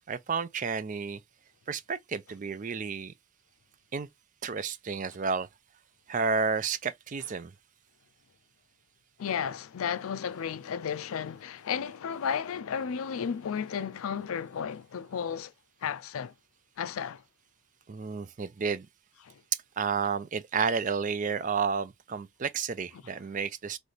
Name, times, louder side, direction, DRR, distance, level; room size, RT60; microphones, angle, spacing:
voice 1, 0.1-1.2 1.7-3.1 3.9-4.1 4.4-5.5 6.1-7.5 17.9-18.9 19.8-23.8, right 5 dB, 35° right, 0.4 m, -31 dB
voice 2, 9.2-15.5 15.8-16.3 16.8-17.2 19.2-19.4, left 7 dB, 75° left, 0.4 m, -33 dB
3.3 x 3.2 x 4.0 m
head